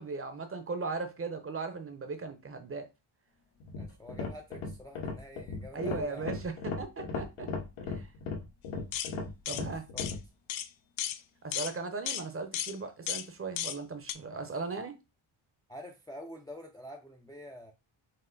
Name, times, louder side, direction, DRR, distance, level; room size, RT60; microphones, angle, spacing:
voice 1, 0.0-2.9 5.7-7.5 7.8-8.1 9.5-9.8 11.4-14.9, right 4 dB, 25° right, 0.8 m, -37 dB
sound 1, 3.6-10.2, left 4 dB, 85° left, 1.4 m, -37 dB
voice 2, 3.8-6.3 9.5-10.2 14.2-14.5 15.7-17.7, left 1 dB, 10° left, 0.5 m, -47 dB
sound 2, 8.9-9.1 9.5-9.6 10.0-10.1 10.5-10.7 11.0-11.2 11.5-11.7 12.1-12.2 12.5-12.7 13.1-13.3 13.6-13.8 14.1-14.2, left 11 dB, 65° left, 0.5 m, -34 dB
5.6 x 2.0 x 3.8 m
cardioid pair, 120°, 49 cm